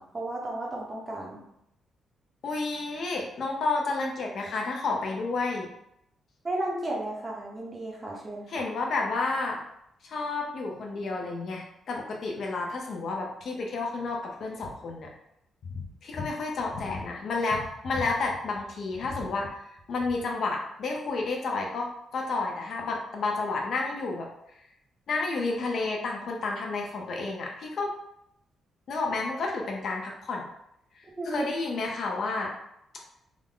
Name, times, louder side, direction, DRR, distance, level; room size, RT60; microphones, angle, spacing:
voice 1, 0.0-1.4 6.4-8.6 31.2-31.4, right 1 dB, 25° right, -2 dB, 0.9 m, -34 dB
voice 2, 2.4-5.7 8.5-9.6 10.0-15.1 15.7-19.5 19.9-24.3 25.1-27.9 28.9-30.5 31.2-32.5, left 3 dB, 60° left, 0 dB, 0.7 m, -31 dB
3.6 x 2.1 x 3.7 m, 0.78 s
cardioid pair, 120°, 0 cm